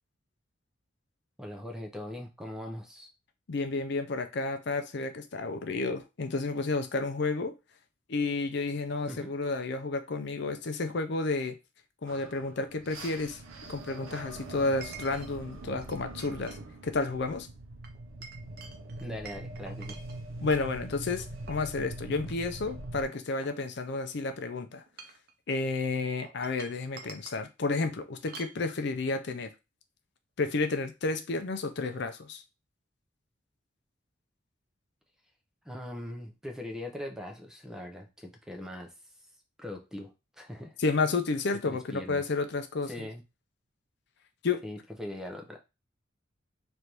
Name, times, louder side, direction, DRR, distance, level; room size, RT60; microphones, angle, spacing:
voice 1, 1.4-3.1 9.1-9.3 19.0-20.0 35.6-38.9 39.6-40.8 41.6-42.2 42.9-43.2 44.6-45.6, left 1 dB, 5° right, 0.6 m, -41 dB
voice 2, 3.5-7.5 8.1-11.6 12.0-13.4 13.7-16.6 16.8-17.5 20.4-24.8 25.5-29.5 30.4-32.4 40.8-42.9 44.4-44.6, left 3 dB, 60° left, 0.5 m, -31 dB
Chink clink, 11.3-11.4 14.8-15.3 15.8-16.6 16.9-17.2 17.8-20.6 21.2-21.7 22.2-22.3 22.7-24.1 24.8-25.3 26.2-27.4 28.3-28.6, right 6 dB, 50° right, 0.6 m, -49 dB
sound 1, 12.1-23.0, right 2 dB, 90° right, 0.7 m, -43 dB
3.3 x 2.6 x 4.4 m
head